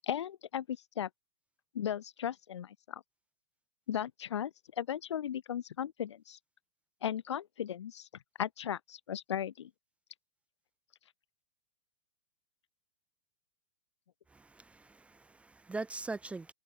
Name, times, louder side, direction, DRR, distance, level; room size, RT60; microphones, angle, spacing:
voice 1, 0.1-1.1 1.7-3.0 3.9-6.4 7.0-8.1 8.4-9.7, left 10 dB, 80° left, 5.1 m, -36 dB
voice 2, 14.3-16.5, right 3 dB, 10° right, 1.1 m, -42 dB
hypercardioid pair, 125°, 14 cm